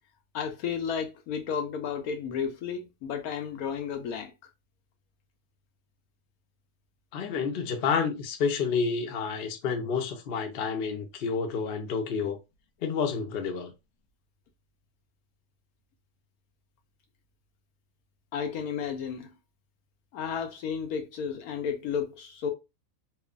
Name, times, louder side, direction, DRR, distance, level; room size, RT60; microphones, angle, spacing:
voice 1, 0.3-4.3 18.3-19.3 20.1-22.5, left 7 dB, 80° left, 1.1 m, -32 dB
voice 2, 7.1-12.4 12.8-13.7, left 5 dB, 60° left, 0.7 m, -29 dB
3.0 x 2.1 x 2.4 m
omnidirectional pair, 1.6 m